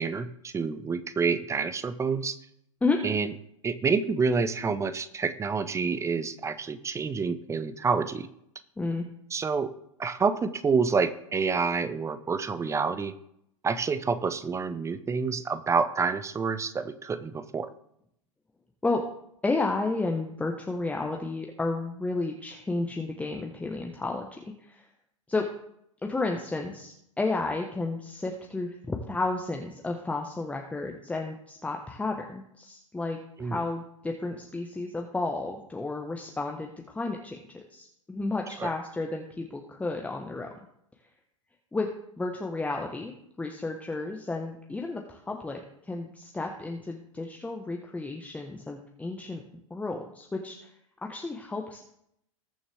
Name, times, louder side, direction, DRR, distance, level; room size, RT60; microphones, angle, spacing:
voice 1, 0.0-2.4 3.0-3.3 3.6-8.3 9.3-9.7 10.0-13.1 13.6-17.7 33.4-33.6 38.6-38.7, right 5 dB, 15° right, 12 dB, 0.8 m, -28 dB
voice 2, 8.8-9.1 18.8-19.0 19.4-24.9 25.3-25.5 26.0-40.5 41.7-41.9 42.2-43.1 43.4-45.6 45.9-49.4 49.7-50.7 51.0-51.8, left 3 dB, 10° left, 2 dB, 1.2 m, -32 dB
20.5 x 7.0 x 3.5 m, 0.74 s
figure-of-eight pair, 90°, 17 cm